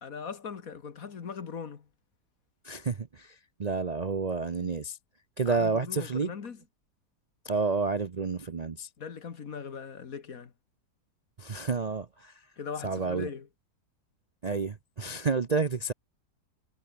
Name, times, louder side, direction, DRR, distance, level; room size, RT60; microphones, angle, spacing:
voice 1, 0.0-1.9 5.5-6.6 9.0-10.5 12.6-13.5, left 6 dB, 60° left, 2.0 m, -40 dB
voice 2, 2.6-5.0 5.4-6.3 7.4-8.9 11.4-12.4 12.8-13.3 14.4-15.9, right 4 dB, 40° right, 0.6 m, -30 dB
omnidirectional pair, 1.7 m